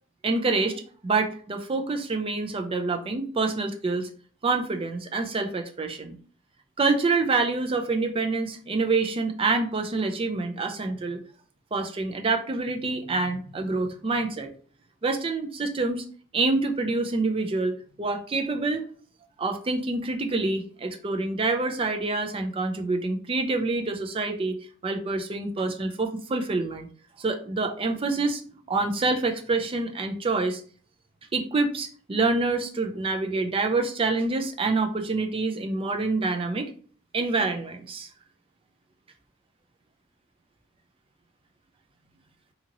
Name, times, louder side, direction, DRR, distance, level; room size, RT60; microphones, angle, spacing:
voice 1, 0.2-4.1 4.4-6.1 6.8-11.2 11.7-14.5 15.0-16.0 16.3-18.8 19.4-24.6 24.8-26.9 27.2-28.4 28.7-30.6 31.3-36.7 37.1-38.1, right 3 dB, 25° right, 4 dB, 0.4 m, -26 dB
2.8 x 2.8 x 2.5 m, 0.43 s
head